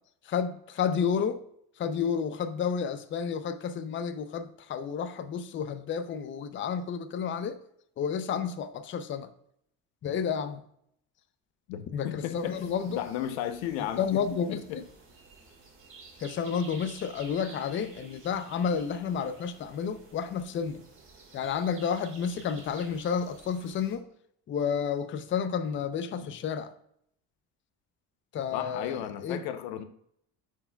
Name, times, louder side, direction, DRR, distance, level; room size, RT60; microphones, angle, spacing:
voice 1, 0.2-1.4 1.8-7.6 8.0-9.3 10.0-10.6 11.9-13.0 14.0-14.8 16.2-20.8 21.3-24.0 24.5-26.7 28.3-29.4, left 7 dB, 35° left, 0.5 m, -31 dB
voice 2, 11.7-12.6 12.9-14.1 14.5-14.8 28.5-29.8, left 11 dB, 90° left, 0.7 m, -34 dB
sound 1, 12.3-24.0, right 3 dB, 35° right, 1.8 m, -52 dB
9.6 x 4.6 x 2.2 m
cardioid pair, 105°, 36 cm